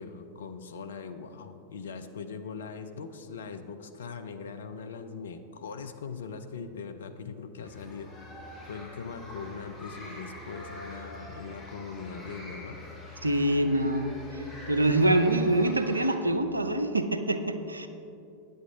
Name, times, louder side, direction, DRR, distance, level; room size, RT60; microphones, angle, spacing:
voice 1, 0.0-8.2 8.7-12.8, left 5 dB, 65° left, 8 dB, 0.5 m, -41 dB
sound 1, 7.6-16.2, left 1 dB, 15° left, 2.0 m, -44 dB
voice 2, 13.2-17.9, right 1 dB, 80° right, 9 dB, 0.5 m, -25 dB
9.2 x 7.9 x 3.8 m, 2.7 s
figure-of-eight pair, 90°, 0 cm